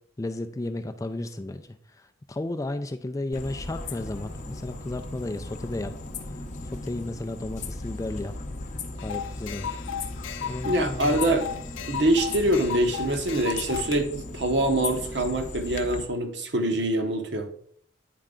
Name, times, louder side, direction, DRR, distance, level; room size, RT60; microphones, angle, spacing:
voice 1, 0.2-6.0 6.6-8.4 9.0-9.8 10.4-11.2, left 2 dB, 15° left, 8 dB, 0.3 m, -33 dB
sound 1, 3.3-16.0, left 2 dB, 40° left, 0.7 m, -37 dB
sound 2, 9.0-14.0, left 8 dB, 85° left, 0.5 m, -35 dB
voice 2, 10.6-11.5 11.9-17.5, right 1 dB, 60° right, 6 dB, 0.9 m, -24 dB
9.2 x 4.4 x 3.7 m, 0.64 s
head